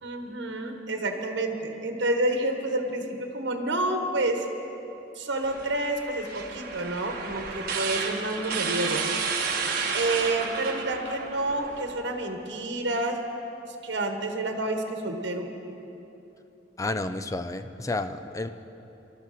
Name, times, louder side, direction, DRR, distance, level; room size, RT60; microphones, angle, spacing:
voice 1, 0.0-4.4 5.2-9.0 9.9-13.2 13.7-15.5, right 2 dB, 90° right, 4 dB, 1.2 m, -29 dB
sound 1, 5.4-11.9, right 5 dB, 55° right, 1.2 m, -32 dB
voice 2, 16.8-18.5, left 2 dB, 20° left, 10 dB, 0.5 m, -31 dB
19.5 x 12.5 x 4.2 m, 3.0 s
head